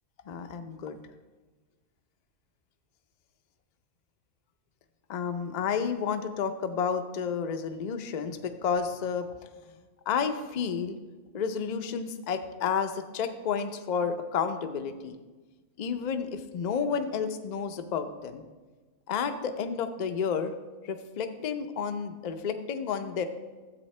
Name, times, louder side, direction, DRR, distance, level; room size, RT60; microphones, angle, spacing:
voice 1, 0.3-1.0 5.1-9.3 10.1-11.0 11.3-15.1 15.8-18.4 19.1-20.5 20.8-23.2, left 6 dB, 50° left, 7 dB, 0.5 m, -31 dB
13.0 x 8.0 x 3.2 m, 1.3 s
omnidirectional pair, 1.4 m